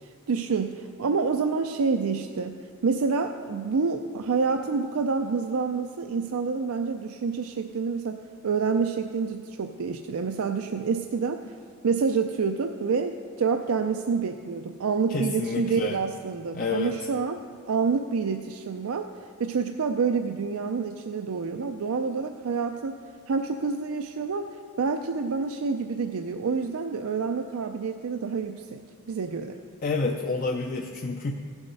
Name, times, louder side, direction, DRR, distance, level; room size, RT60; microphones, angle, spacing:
voice 1, 0.0-2.5 2.8-11.4 11.8-19.1 19.4-22.9 23.3-28.8 29.1-29.6, right 5 dB, 75° right, 6 dB, 0.4 m, -28 dB
voice 2, 15.1-16.0 16.5-17.0 29.8-31.3, left 3 dB, 40° left, 3 dB, 0.5 m, -29 dB
15.5 x 7.1 x 5.3 m, 2.1 s
head